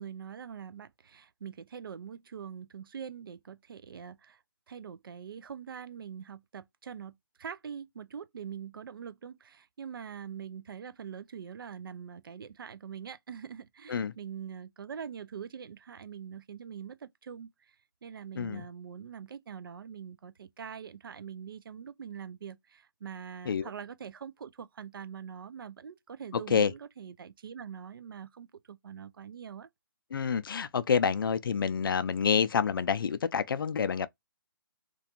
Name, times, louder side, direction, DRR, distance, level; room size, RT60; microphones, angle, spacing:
voice 1, 0.0-4.4 4.7-17.8 18.0-29.7, right 7 dB, 75° right, 0.4 m, -43 dB
voice 2, 18.4-18.7 23.5-23.7 26.5-26.7 30.1-34.1, left 6 dB, 75° left, 0.4 m, -28 dB
2.5 x 2.3 x 2.8 m
hypercardioid pair, 150°, 12 cm